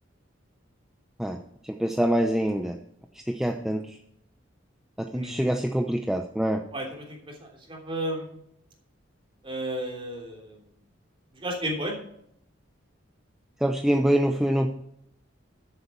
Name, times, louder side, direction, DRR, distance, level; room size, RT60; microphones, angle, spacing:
voice 1, 1.6-2.8 3.1-4.0 5.0-6.6 13.6-14.7, right 1 dB, ahead, 4 dB, 0.7 m, -25 dB
voice 2, 5.1-5.5 6.7-8.3 9.4-10.7 11.4-11.9, right 1 dB, 30° right, 0 dB, 3.3 m, -33 dB
12.5 x 8.1 x 4.5 m, 0.72 s
head